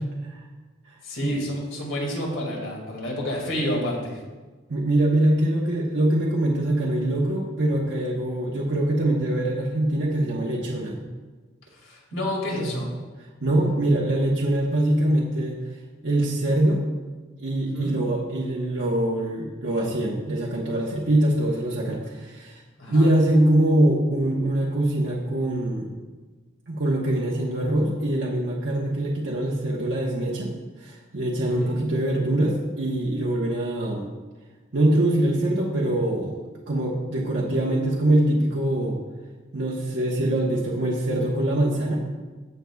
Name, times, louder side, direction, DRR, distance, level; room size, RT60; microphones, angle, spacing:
voice 1, 1.0-4.2 11.7-12.9 17.7-18.0 22.8-23.1 31.4-31.9, left 1 dB, 85° left, -1 dB, 2.2 m, -30 dB
voice 2, 4.7-11.0 12.5-12.8 13.4-15.6 16.0-16.8 17.4-22.6 22.9-25.9 26.7-34.1 34.7-36.3 36.7-39.0 39.5-42.0, right 1 dB, 70° right, -4 dB, 1.1 m, -23 dB
16.0 x 6.4 x 2.3 m, 1.3 s
head